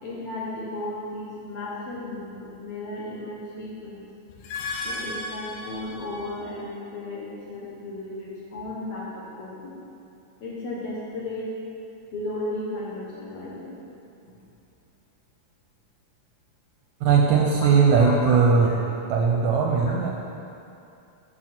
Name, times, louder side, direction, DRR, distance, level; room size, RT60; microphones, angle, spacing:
voice 1, 0.0-4.0 4.8-9.7 10.4-11.6 12.1-13.8 17.6-17.7 18.0-18.4, left 2 dB, 60° left, -6 dB, 1.8 m, -34 dB
sound 1, 4.3-6.6, left 2 dB, 80° left, 2.2 m, -35 dB
voice 2, 17.0-18.7 19.1-20.1, right 5 dB, 80° right, 0 dB, 1.8 m, -19 dB
7.2 x 7.2 x 4.4 m, 2.7 s
omnidirectional pair, 3.7 m